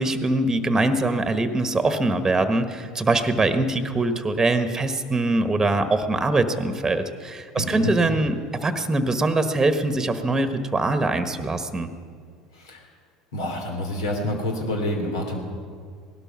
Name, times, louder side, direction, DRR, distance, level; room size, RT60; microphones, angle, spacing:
voice 1, 0.0-11.9, right 2 dB, 15° right, 9 dB, 1.3 m, -23 dB
voice 2, 7.5-7.9 12.5-12.8 13.3-15.4, left 1 dB, 75° left, 3 dB, 2.8 m, -28 dB
18.0 x 12.0 x 5.9 m, 2.1 s
hypercardioid pair, 75°, 3 cm